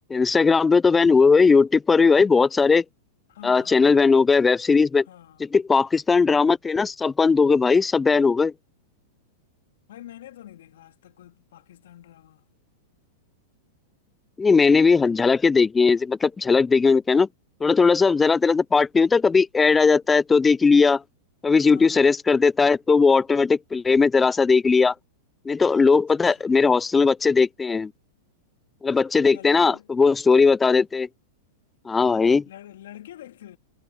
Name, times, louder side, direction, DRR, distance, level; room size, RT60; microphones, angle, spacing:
voice 1, 0.1-2.8 3.4-5.1 5.5-8.5 14.4-17.3 17.6-21.0 21.4-24.9 25.5-27.9 28.8-31.1 31.9-32.4, left 4 dB, 15° left, 0.4 m, -18 dB
voice 2, 3.3-3.9 5.1-5.4 9.9-12.5 21.7-22.1 25.8-26.6 29.2-29.9 32.4-33.6, left 12 dB, 70° left, 2.7 m, -46 dB
hypercardioid pair, 105°, 0 cm